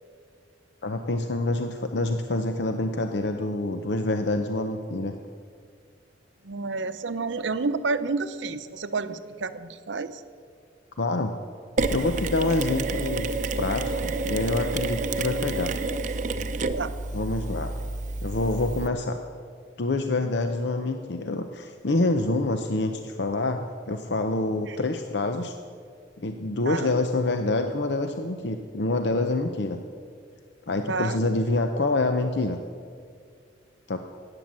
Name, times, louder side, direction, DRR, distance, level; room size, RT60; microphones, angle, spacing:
voice 1, 0.8-5.2 11.0-11.3 11.9-13.3 13.6-15.7 17.1-17.7 18.2-19.2 19.8-25.5 26.2-29.8 30.7-32.6 33.9-34.0, left 2 dB, 65° left, 6 dB, 0.7 m, -26 dB
voice 2, 6.4-10.2 16.7-17.0 24.7-24.8 26.7-26.9 30.9-31.2, right 4 dB, 80° right, 12 dB, 0.7 m, -30 dB
Mechanisms, 11.8-18.9, right 3 dB, 40° right, 0.6 m, -29 dB
14.5 x 9.7 x 7.5 m, 2.2 s
head